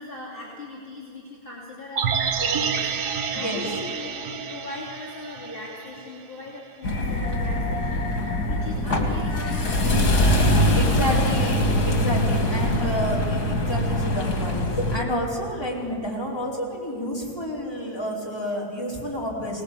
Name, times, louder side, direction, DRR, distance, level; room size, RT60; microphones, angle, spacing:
voice 1, 0.0-11.4 11.7-12.8, left 3 dB, 35° left, -5 dB, 3.2 m, -40 dB
sound 1, 2.0-6.2 6.5-6.6, right 6 dB, 90° right, 1.7 m, -28 dB
voice 2, 3.3-3.8 10.7-19.6, equal, 15° left, -4 dB, 4.7 m, -29 dB
sound 2, 6.8-15.0, left 1 dB, 75° left, 3.0 m, -23 dB
24.5 x 19.0 x 8.5 m, 2.6 s
omnidirectional pair, 1.7 m